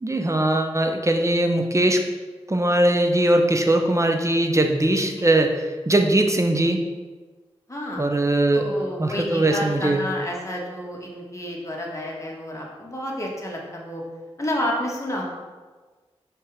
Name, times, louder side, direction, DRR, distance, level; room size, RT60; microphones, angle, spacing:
voice 1, 0.0-2.0 2.5-5.5 5.9-6.8 8.0-8.7 9.0-10.0, right 1 dB, 25° right, 5 dB, 0.8 m, -20 dB
voice 2, 7.7-8.0 8.5-14.0 14.4-15.2, left 1 dB, 30° left, -2 dB, 1.7 m, -30 dB
5.8 x 3.6 x 4.9 m, 1.3 s
cardioid pair, 40°, 11 cm